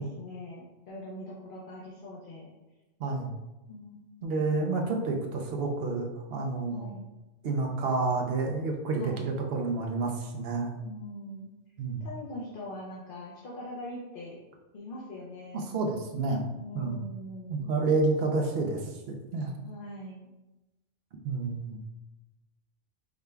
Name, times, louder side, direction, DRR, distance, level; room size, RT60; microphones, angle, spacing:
voice 1, 0.0-2.5 3.7-4.9 6.7-7.1 9.0-9.2 10.8-11.5 12.0-14.4 14.7-15.6 16.5-17.7 19.6-20.2, left 1 dB, 50° left, -5 dB, 0.8 m, -42 dB
voice 2, 3.0-3.3 4.2-6.9 7.4-10.7 11.8-12.0 15.7-16.4 16.7-17.0 17.5-19.5 21.2-21.8, right 3 dB, 60° right, 2 dB, 0.8 m, -29 dB
4.9 x 3.4 x 2.2 m, 1.0 s
omnidirectional pair, 1.2 m